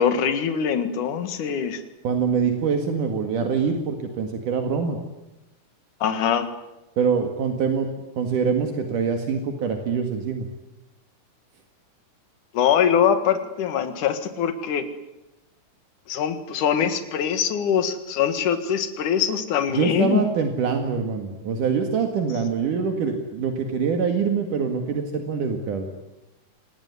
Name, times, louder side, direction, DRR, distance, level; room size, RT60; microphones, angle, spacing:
voice 1, 0.0-1.8 6.0-6.5 12.5-14.9 16.1-20.2, left 8 dB, 70° left, 9 dB, 3.2 m, -23 dB
voice 2, 2.0-5.0 7.0-7.9 8.2-10.5 19.7-25.9, right 6 dB, 70° right, 5 dB, 3.5 m, -24 dB
26.5 x 20.0 x 9.7 m, 0.97 s
omnidirectional pair, 3.8 m